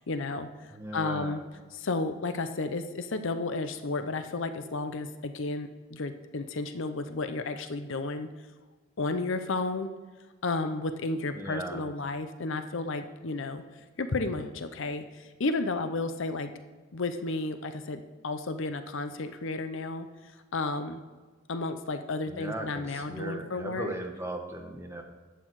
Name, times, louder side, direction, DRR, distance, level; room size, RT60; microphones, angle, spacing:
voice 1, 0.1-0.5 0.9-1.4 1.8-5.7 6.0-8.3 9.0-9.9 10.4-13.6 14.0-15.0 15.4-16.5 16.9-18.0 18.2-20.1 20.5-21.0 21.5-23.9, left 3 dB, 65° left, 9 dB, 0.7 m, -32 dB
voice 2, 0.7-1.4 11.3-11.9 22.3-25.0, right 1 dB, 15° right, 2 dB, 1.2 m, -38 dB
11.5 x 8.5 x 4.7 m, 1.4 s
head